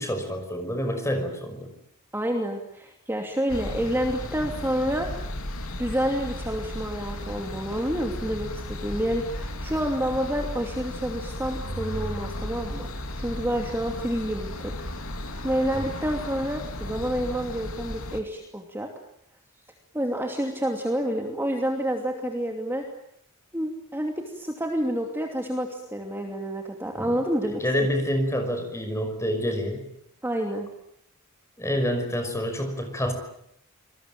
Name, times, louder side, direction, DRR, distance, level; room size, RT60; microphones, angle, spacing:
voice 1, 0.0-1.7 15.7-15.9 27.0-27.2 27.4-29.9 31.6-33.1, equal, 15° left, 6 dB, 5.6 m, -28 dB
voice 2, 2.1-5.1 5.8-14.9 15.2-18.9 19.9-22.9 23.5-27.9 30.2-30.7, equal, 10° right, 2 dB, 2.7 m, -29 dB
sound 1, 3.5-18.2, left 1 dB, 65° left, 3.3 m, -35 dB
28.0 x 21.0 x 9.2 m, 0.74 s
head